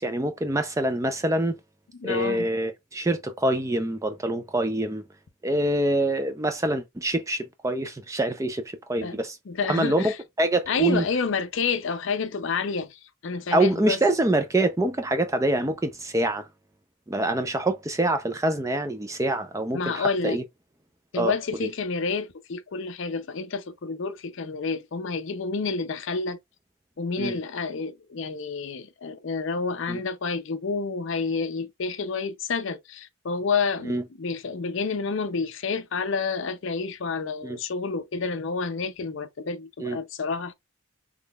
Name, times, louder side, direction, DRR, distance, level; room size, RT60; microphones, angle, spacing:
voice 1, 0.0-1.6 2.0-5.0 5.4-9.4 9.6-11.0 13.5-16.5 17.1-20.4 21.1-21.3 21.6-21.7 27.2-27.4 29.9-30.0 33.8-34.0 37.4-37.6 39.8-40.0, right 1 dB, 15° right, 0.4 m, -25 dB
voice 2, 2.0-2.5 9.0-9.2 9.5-10.2 10.7-14.0 19.7-20.4 21.1-26.4 27.0-40.5, left 4 dB, 55° left, 0.5 m, -29 dB
3.6 x 3.2 x 2.3 m
head